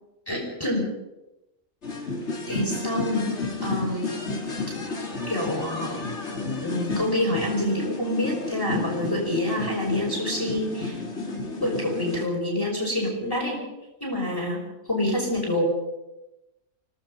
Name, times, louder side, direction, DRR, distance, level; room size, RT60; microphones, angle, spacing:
voice 1, 0.3-0.9 2.5-4.1 5.3-6.0 6.6-11.0 11.6-13.6 14.0-14.6 14.9-15.8, left 1 dB, 15° left, -2 dB, 5.8 m, -27 dB
sound 1, 1.8-12.3, left 3 dB, 45° left, 3.2 m, -31 dB
28.5 x 18.0 x 5.6 m, 0.95 s
omnidirectional pair, 1.7 m